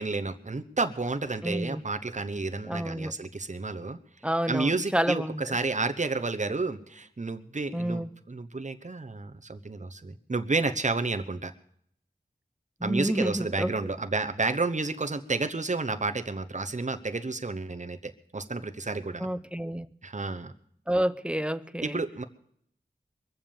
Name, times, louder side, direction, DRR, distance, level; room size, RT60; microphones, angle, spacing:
voice 1, 0.0-4.0 4.5-11.5 12.8-19.3 20.0-20.5 21.8-22.2, right 3 dB, 45° right, 1.0 m, -31 dB
voice 2, 1.4-1.8 2.7-3.2 4.2-5.4 7.7-8.1 12.8-13.7 19.2-19.9 20.9-22.0, right 1 dB, 5° right, 0.7 m, -29 dB
22.5 x 7.6 x 7.2 m
wide cardioid pair, 40°, 17 cm